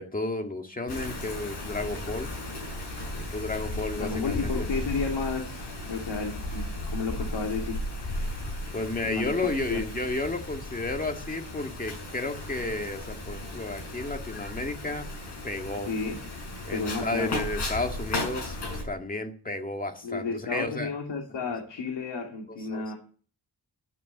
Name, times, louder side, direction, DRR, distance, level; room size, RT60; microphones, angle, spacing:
voice 1, 0.0-2.3 3.3-4.5 8.7-15.1 15.4-15.9 16.7-20.9 21.4-21.5 22.7-22.9, left 2 dB, 20° left, 4 dB, 1.9 m, -32 dB
Wind, 0.9-18.8, left 1 dB, 70° left, 7.0 m, -35 dB
voice 2, 4.0-6.7 6.9-7.8 9.0-9.3 9.7-9.8 15.9-16.2 16.7-17.3 20.0-22.9, left 4 dB, 85° left, 2 dB, 2.7 m, -32 dB
12.5 x 9.4 x 8.3 m, 0.43 s
wide cardioid pair, 160°, 42 cm